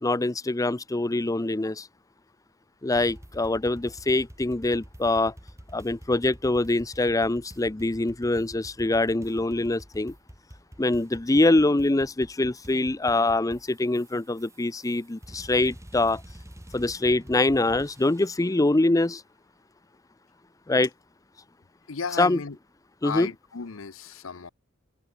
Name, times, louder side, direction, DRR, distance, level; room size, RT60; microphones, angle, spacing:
voice 1, 0.0-1.9 2.8-5.3 5.7-10.1 10.8-16.2 16.7-19.2 20.7-20.9 22.2-22.4 23.0-23.3, left 2 dB, 15° left, 0.6 m, -24 dB
sound 1, 2.9-18.5, equal, 15° right, 1.9 m, -47 dB
voice 2, 21.9-22.6 23.0-24.5, left 5 dB, 85° left, 0.9 m, -34 dB
open air
head